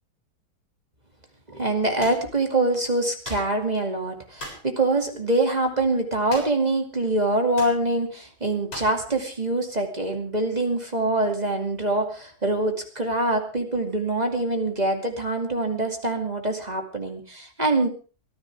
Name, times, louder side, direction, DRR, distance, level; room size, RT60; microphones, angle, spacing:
voice 1, 1.5-17.9, right 2 dB, 20° right, 4 dB, 2.5 m, -24 dB
sound 1, 2.0-2.3 3.2-3.5 4.4-4.7 6.3-6.7 7.0-7.1 7.6-7.8 8.7-9.0, left 1 dB, 70° left, 7.9 m, -38 dB
24.0 x 15.0 x 3.5 m, 0.36 s
omnidirectional pair, 2.3 m